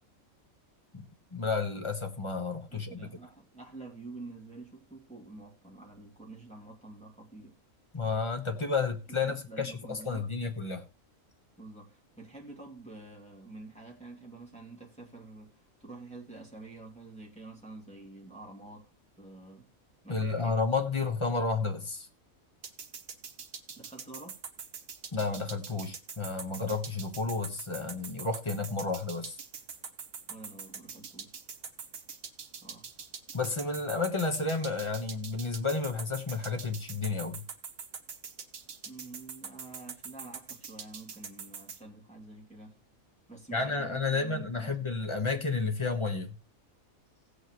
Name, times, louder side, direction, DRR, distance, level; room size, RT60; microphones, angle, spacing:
voice 1, 1.3-3.1 7.9-10.8 20.1-22.1 25.1-29.4 33.3-37.4 43.5-46.4, left 4 dB, 20° left, 1.3 m, -31 dB
voice 2, 2.7-7.6 9.2-10.3 11.6-18.9 19.2-19.7 20.0-20.6 23.8-24.4 25.7-25.8 30.3-31.3 32.6-33.0 38.8-42.8 43.3-45.0, right 3 dB, 5° left, 2.5 m, -48 dB
sound 1, 22.6-41.8, right 6 dB, 75° right, 1.6 m, -43 dB
16.5 x 8.2 x 3.1 m
omnidirectional pair, 1.5 m